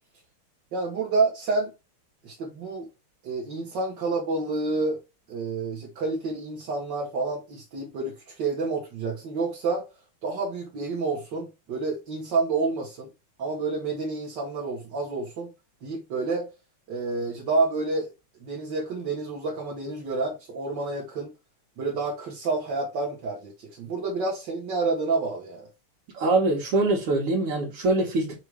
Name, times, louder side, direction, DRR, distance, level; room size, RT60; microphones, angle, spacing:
voice 1, 0.7-1.7 2.2-2.9 3.2-5.0 5.3-9.9 10.2-13.1 13.4-15.5 15.8-16.5 16.9-18.1 18.4-21.3 21.8-25.7, right 3 dB, 55° right, 2.2 m, -29 dB
voice 2, 26.1-28.4, right 2 dB, 85° right, 2.7 m, -23 dB
6.7 x 3.0 x 4.8 m
omnidirectional pair, 2.4 m